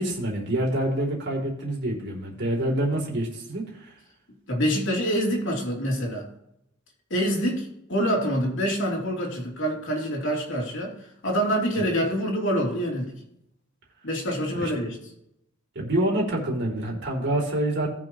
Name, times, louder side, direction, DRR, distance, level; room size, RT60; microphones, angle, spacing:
voice 1, 0.0-3.9 14.6-14.7 15.7-17.9, right 1 dB, 55° right, -1 dB, 3.2 m, -27 dB
voice 2, 4.5-6.3 7.1-10.9 11.2-13.1 14.0-15.0, equal, 65° left, -1 dB, 3.1 m, -26 dB
18.5 x 6.2 x 3.0 m, 0.77 s
head